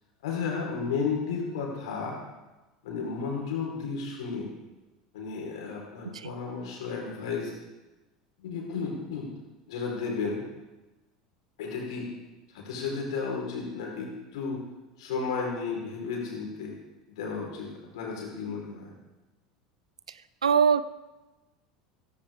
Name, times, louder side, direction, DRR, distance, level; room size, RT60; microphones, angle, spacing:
voice 1, 0.2-2.2 2.8-4.5 5.1-7.5 8.4-9.3 9.7-10.4 11.6-12.1 12.5-14.6 15.0-16.7 17.1-18.9, left 5 dB, 65° left, -1 dB, 4.7 m, -33 dB
voice 2, 20.4-20.8, right 6 dB, 80° right, 16 dB, 0.5 m, -22 dB
16.0 x 15.5 x 3.8 m, 1.1 s
figure-of-eight pair, 75°, 3 cm